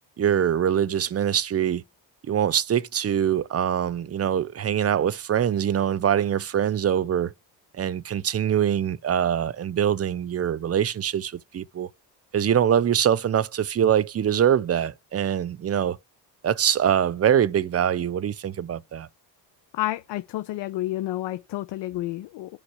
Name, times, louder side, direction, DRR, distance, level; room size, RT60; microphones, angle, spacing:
voice 1, 0.2-1.8 2.3-7.3 7.7-11.9 12.3-16.0 16.4-19.1, right 9 dB, 35° right, 0.6 m, -23 dB
voice 2, 19.7-22.6, left 15 dB, 75° left, 0.8 m, -30 dB
8.5 x 5.5 x 7.9 m
cardioid pair, 90°, 43 cm